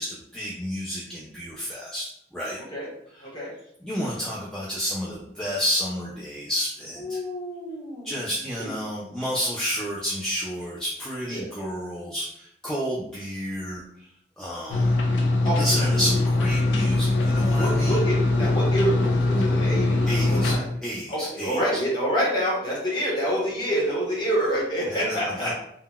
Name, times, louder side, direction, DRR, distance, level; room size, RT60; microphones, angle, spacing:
voice 1, 0.0-2.6 3.1-3.3 3.8-7.2 8.0-13.8 14.4-14.9 15.5-18.0 20.1-20.6 20.8-21.8 24.9-25.5, equal, 5° left, -6 dB, 0.3 m, -30 dB
voice 2, 7.0-8.3 8.6-8.7 11.3-11.5 15.4-15.6 17.6-20.7 21.1-25.5, equal, 25° left, -6 dB, 0.9 m, -27 dB
sound 1, 14.7-20.6, left 2 dB, 90° left, 0.4 m, -22 dB
3.6 x 2.1 x 2.2 m, 0.71 s
head